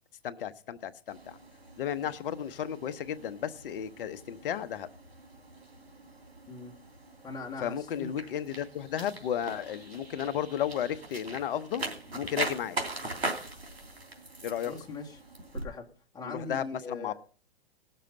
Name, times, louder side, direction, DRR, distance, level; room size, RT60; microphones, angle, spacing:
voice 1, 0.2-1.4 1.8-4.9 7.6-11.8 12.1-12.8 14.4-14.7 16.2-17.1, left 9 dB, 60° left, 14 dB, 1.1 m, -33 dB
sound 1, 1.1-15.6, right 2 dB, 90° right, 3.0 m, -41 dB
voice 2, 7.2-8.1 14.7-15.2 15.5-15.9 16.1-17.1, left 4 dB, 10° left, 0 dB, 2.2 m, -40 dB
18.5 x 6.7 x 5.3 m, 0.39 s
hypercardioid pair, 120°, 31 cm